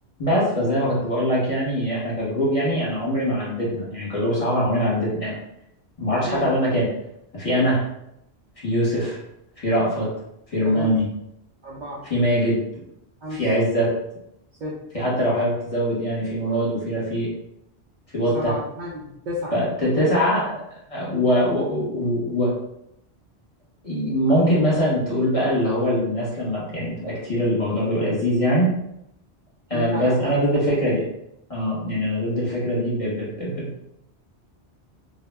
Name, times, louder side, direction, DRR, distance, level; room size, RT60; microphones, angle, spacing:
voice 1, 0.2-5.4 6.0-6.9 7.3-7.8 8.6-9.2 9.6-10.1 10.5-11.1 12.0-12.6 13.3-13.9 14.9-17.3 18.1-18.5 19.5-20.6 20.9-22.5 23.8-28.7 29.7-31.0 31.5-33.8, equal, 35° left, -7 dB, 0.9 m, -22 dB
voice 2, 6.2-6.5 10.6-11.0 11.6-12.1 13.2-13.5 14.6-14.9 18.3-19.6 29.7-30.3, left 1 dB, 55° right, -5 dB, 0.6 m, -32 dB
2.2 x 2.0 x 3.3 m, 0.80 s
omnidirectional pair, 1.1 m